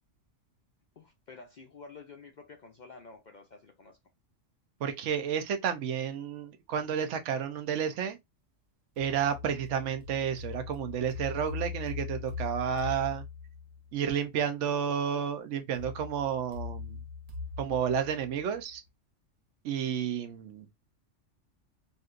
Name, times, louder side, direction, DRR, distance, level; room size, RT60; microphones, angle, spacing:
voice 1, 1.0-4.0, left 4 dB, 60° left, 0.5 m, -50 dB
voice 2, 4.8-8.2 9.0-13.2 13.9-17.0 17.6-18.8 19.6-20.7, right 8 dB, 70° right, 1.0 m, -31 dB
sound 1, 9.0-13.9 15.7-18.8, left 5 dB, 90° right, 1.4 m, -41 dB
4.0 x 2.5 x 2.4 m
omnidirectional pair, 1.3 m